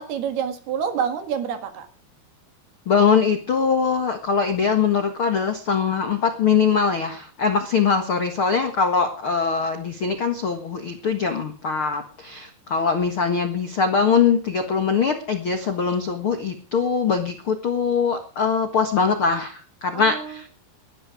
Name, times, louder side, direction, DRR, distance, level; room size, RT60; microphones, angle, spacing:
voice 1, 0.0-1.9 19.9-20.4, right 7 dB, 65° right, 8 dB, 3.6 m, -27 dB
voice 2, 2.8-20.5, left 6 dB, 85° left, 6 dB, 1.1 m, -22 dB
20.0 x 12.5 x 5.0 m, 0.37 s
omnidirectional pair, 5.2 m